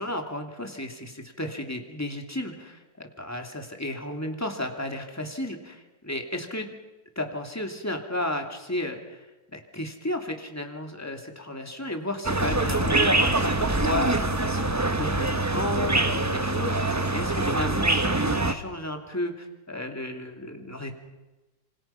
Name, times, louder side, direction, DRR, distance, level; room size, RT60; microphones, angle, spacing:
voice 1, 0.0-6.7 7.2-20.9, left 1 dB, 10° left, 4 dB, 2.5 m, -33 dB
sound 1, 12.2-18.5, right 2 dB, 20° right, 0.4 m, -24 dB
27.0 x 26.0 x 5.7 m, 1.1 s
omnidirectional pair, 2.0 m